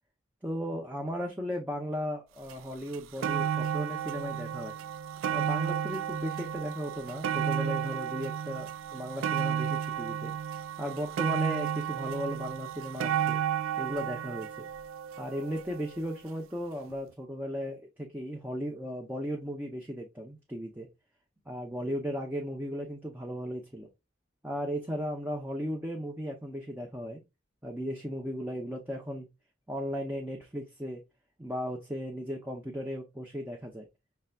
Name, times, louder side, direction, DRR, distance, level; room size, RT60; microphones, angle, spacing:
voice 1, 0.4-4.8 5.3-10.3 10.8-13.4 13.8-14.7 15.2-20.9 21.5-23.9 24.4-27.2 27.6-29.3 29.7-31.0 31.4-33.9, equal, 10° right, 0.6 m, -36 dB
sound 1, 2.5-2.6 2.9-16.1 16.9-17.0, right 8 dB, 85° right, 0.3 m, -32 dB
5.5 x 3.3 x 2.3 m
head